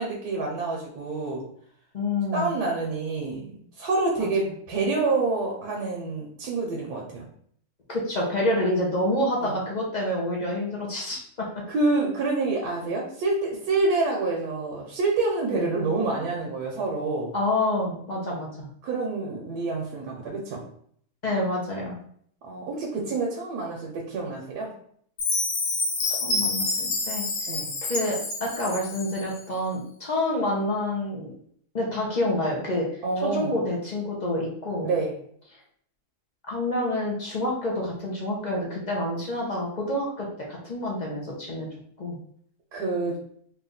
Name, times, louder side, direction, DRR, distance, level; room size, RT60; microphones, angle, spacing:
voice 1, 0.0-1.4 2.3-7.2 9.4-9.5 11.7-17.3 18.8-20.6 22.4-24.7 27.5-27.7 33.0-33.5 34.8-35.1 42.7-43.2, right 3 dB, 75° right, -1 dB, 1.3 m, -27 dB
voice 2, 1.9-2.5 4.2-4.3 7.9-11.5 15.5-15.7 17.3-18.7 21.2-22.0 26.2-27.3 27.8-31.3 31.7-32.8 33.2-34.9 36.5-41.7 42.0-42.2, left 1 dB, 40° left, -3 dB, 0.7 m, -28 dB
Chime, 25.2-29.3, left 3 dB, 85° left, 1.5 m, -28 dB
3.5 x 2.6 x 3.8 m, 0.63 s
omnidirectional pair, 1.8 m